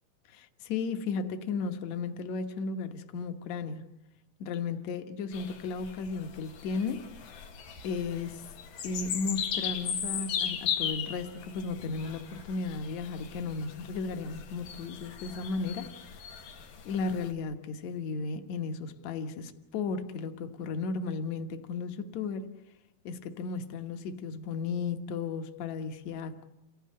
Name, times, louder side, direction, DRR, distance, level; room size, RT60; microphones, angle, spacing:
voice 1, 0.3-3.9 4.4-7.1 7.8-8.4 8.8-15.9 16.9-22.5 23.0-26.4, left 4 dB, 60° left, 2.2 m, -35 dB
sound 1, 5.3-17.3, left 8 dB, 90° left, 3.9 m, -38 dB
28.5 x 18.0 x 8.6 m
omnidirectional pair, 4.2 m